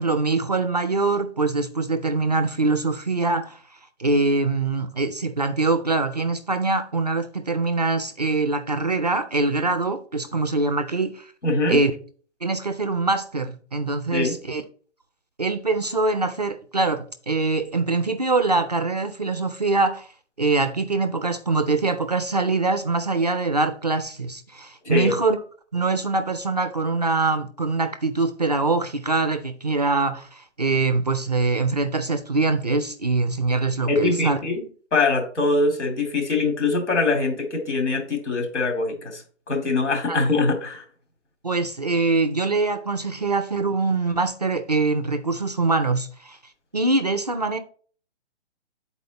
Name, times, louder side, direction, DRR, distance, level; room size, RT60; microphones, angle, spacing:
voice 1, 0.0-3.6 4.0-11.3 11.7-11.9 12.4-14.6 15.4-20.1 20.4-25.4 25.7-34.4 40.1-40.2 41.4-46.4 46.7-47.6, right 3 dB, 35° right, 0.4 m, -23 dB
voice 2, 11.4-11.8 14.1-14.3 24.8-25.1 33.9-34.6 34.9-39.2 39.5-40.8, left 3 dB, 75° left, 2.7 m, -23 dB
8.6 x 4.2 x 4.0 m
hypercardioid pair, 170°, 36 cm